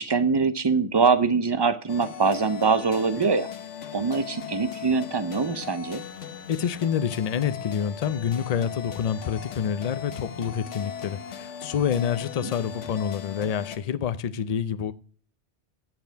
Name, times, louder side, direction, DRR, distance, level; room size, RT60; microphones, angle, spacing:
voice 1, 0.0-3.5 3.9-6.0 12.4-12.5, right 4 dB, 45° right, 0.3 m, -23 dB
sound 1, 1.9-13.8, left 8 dB, 80° left, 1.3 m, -38 dB
voice 2, 6.5-14.9, left 8 dB, 45° left, 0.5 m, -27 dB
9.1 x 7.8 x 4.5 m
omnidirectional pair, 1.2 m